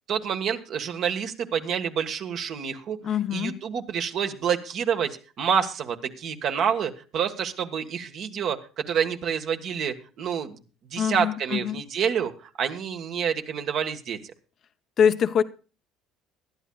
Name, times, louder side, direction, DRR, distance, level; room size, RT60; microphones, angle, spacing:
voice 1, 0.1-3.0 3.3-8.6 8.9-10.6 10.9-14.2, right 7 dB, 60° right, 1.4 m, -28 dB
voice 2, 3.0-3.6 11.0-11.8 15.0-15.4, left 8 dB, 50° left, 0.7 m, -23 dB
21.5 x 11.5 x 2.3 m
hypercardioid pair, 70°, 0 cm